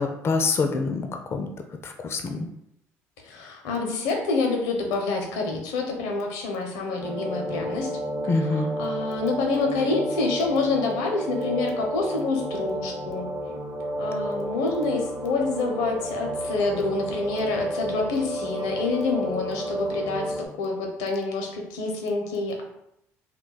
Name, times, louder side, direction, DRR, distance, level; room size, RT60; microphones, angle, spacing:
voice 1, 0.0-1.5 1.8-2.4 8.3-8.7, left 4 dB, 40° left, 4 dB, 0.4 m, -25 dB
voice 2, 3.2-7.9 8.4-13.3 14.0-22.6, left 3 dB, 85° left, 2 dB, 0.6 m, -27 dB
sound 1, 7.0-20.5, equal, 30° right, 0.7 m, -31 dB
2.2 x 2.2 x 3.9 m, 0.79 s
supercardioid pair, 70°, 7 cm